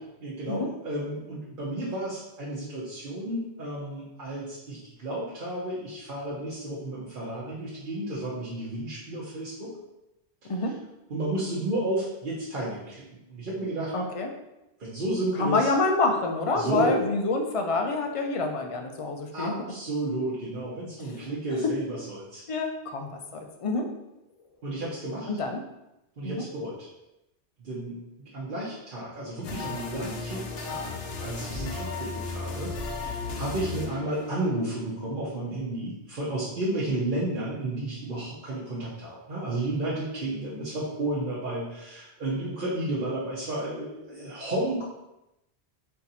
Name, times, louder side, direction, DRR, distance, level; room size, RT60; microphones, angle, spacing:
voice 1, 0.2-9.8 11.1-13.9 14.8-15.7 16.6-17.0 19.3-22.4 24.6-25.3 26.2-26.9 27.6-30.9 31.2-44.8, right 1 dB, 50° right, -7 dB, 1.0 m, -32 dB
voice 2, 13.9-14.3 15.4-19.5 21.6-21.7 22.5-23.9 25.3-25.6 26.2-26.4, left 3 dB, 50° left, 3 dB, 0.4 m, -27 dB
sound 1, 29.4-34.7, left 3 dB, 65° left, 0.9 m, -35 dB
4.4 x 2.7 x 4.1 m, 0.92 s
omnidirectional pair, 1.1 m